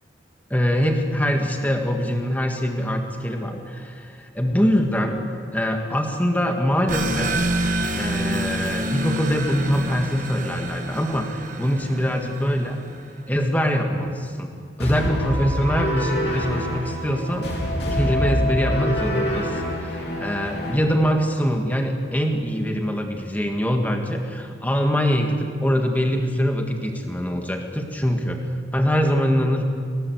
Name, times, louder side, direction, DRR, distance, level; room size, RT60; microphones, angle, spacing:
voice 1, 0.5-7.3 7.9-12.8 13.3-14.5 14.8-28.4 28.7-29.6, equal, 10° left, 3 dB, 1.8 m, -23 dB
sound 1, 6.9-13.1, right 1 dB, 45° right, 1.5 m, -28 dB
sound 2, 14.8-20.8, equal, 60° left, 3.7 m, -26 dB
20.0 x 18.0 x 8.0 m, 2.1 s
head